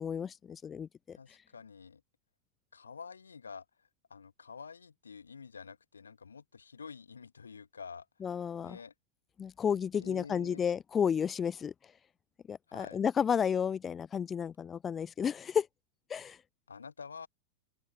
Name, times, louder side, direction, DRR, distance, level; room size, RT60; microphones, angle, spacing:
voice 1, 0.0-1.2 8.2-8.8 9.4-11.7 12.5-15.7 16.1-16.4, left 7 dB, 20° left, 0.5 m, -32 dB
voice 2, 1.1-2.0 2.7-3.6 4.1-8.1 8.6-8.9 9.9-10.6 12.7-13.0 16.7-17.3, left 5 dB, 75° left, 2.0 m, -48 dB
open air
figure-of-eight pair, 90°, 0 cm